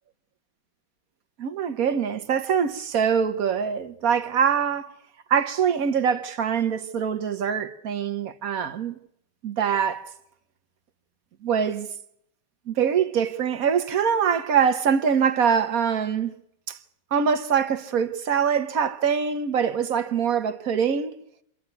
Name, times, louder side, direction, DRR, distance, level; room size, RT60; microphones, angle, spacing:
voice 1, 1.4-4.9 5.3-8.9 9.4-10.1 11.4-11.9 12.7-16.4 16.7-16.8 17.1-21.1, right 7 dB, 50° right, 1.3 m, -24 dB
26.5 x 12.0 x 9.4 m
omnidirectional pair, 2.2 m